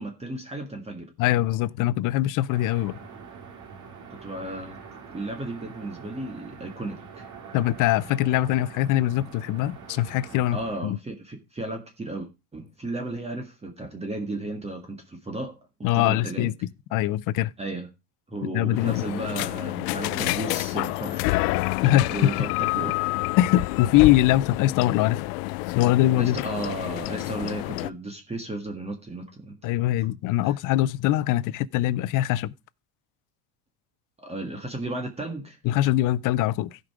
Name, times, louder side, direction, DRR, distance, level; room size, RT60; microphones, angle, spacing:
voice 1, 0.0-1.1 4.2-7.3 10.5-15.6 15.9-16.5 17.6-17.9 18.3-21.5 21.9-23.1 26.2-29.8 30.4-30.6 34.2-35.6, right 2 dB, 15° right, 1.6 m, -34 dB
voice 2, 1.2-2.9 7.5-11.0 15.8-16.5 16.9-17.5 18.4-19.0 21.8-22.1 23.4-25.2 25.7-26.4 29.6-32.5 35.6-36.8, left 14 dB, 45° left, 0.6 m, -22 dB
sound 1, 2.5-10.8, right 5 dB, 40° right, 2.3 m, -44 dB
sound 2, 18.8-27.9, left 21 dB, 85° left, 0.6 m, -28 dB
15.5 x 5.3 x 4.7 m
cardioid pair, 135°, 45 cm